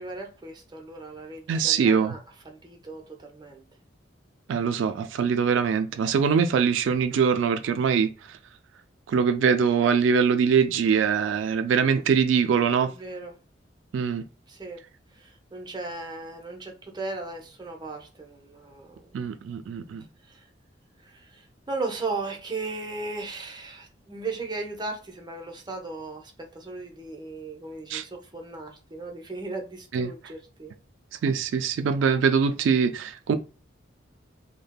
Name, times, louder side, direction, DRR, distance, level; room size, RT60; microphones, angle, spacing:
voice 1, 0.0-3.6 12.8-13.3 14.5-14.8 15.1-19.1 20.2-20.5 21.0-30.7, right 3 dB, 25° right, 0.7 m, -37 dB
voice 2, 1.5-2.1 4.5-8.4 9.1-12.9 13.9-14.2 19.1-20.0 27.9-28.0 29.9-30.1 31.1-33.3, right 6 dB, 85° right, 0.3 m, -23 dB
3.3 x 2.1 x 2.2 m
head